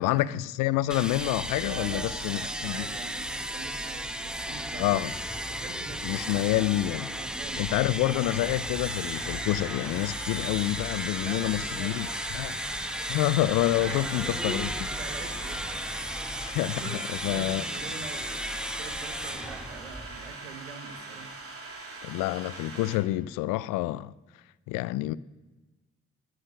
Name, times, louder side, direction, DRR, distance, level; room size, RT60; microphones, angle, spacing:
voice 1, 0.0-2.9 4.8-5.1 6.0-7.1 7.6-12.6 13.1-14.7 16.4-16.8 17.2-17.6 22.0-24.1 24.7-25.2, left 16 dB, 65° left, 0.5 m, -28 dB
sound 1, 0.9-20.4, equal, ahead, 1.1 m, -34 dB
voice 2, 1.6-5.1 5.4-6.4 7.1-7.6 11.2-12.2 13.8-16.1 16.6-21.3, right 5 dB, 90° right, 1.2 m, -44 dB
sound 2, 8.8-23.0, right 3 dB, 40° right, 3.0 m, -43 dB
13.0 x 9.1 x 6.4 m
hypercardioid pair, 40°, 34 cm